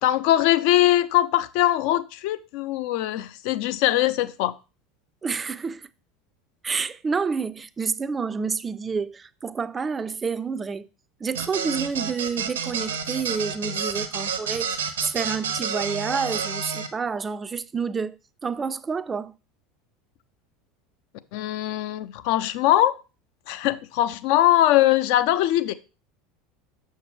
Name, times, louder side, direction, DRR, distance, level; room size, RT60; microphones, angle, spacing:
voice 1, 0.0-4.5 21.3-23.0 23.5-25.7, left 14 dB, 55° left, 0.4 m, -21 dB
voice 2, 5.2-5.9 6.6-10.9 11.2-18.2 18.4-19.3, right 5 dB, 20° right, 0.4 m, -29 dB
sound 1, 11.3-16.9, right 6 dB, 70° right, 0.7 m, -29 dB
6.5 x 6.5 x 3.2 m
figure-of-eight pair, 75°, 0 cm